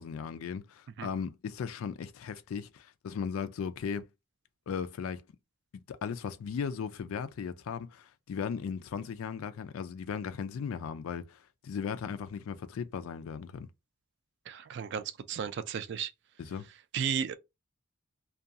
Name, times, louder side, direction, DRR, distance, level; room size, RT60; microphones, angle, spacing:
voice 1, 0.0-4.1 4.7-5.2 5.9-13.7 16.4-16.7, left 6 dB, 75° left, 0.3 m, -37 dB
voice 2, 14.5-16.1 16.9-17.3, right 7 dB, 55° right, 0.3 m, -34 dB
2.4 x 2.2 x 2.6 m
head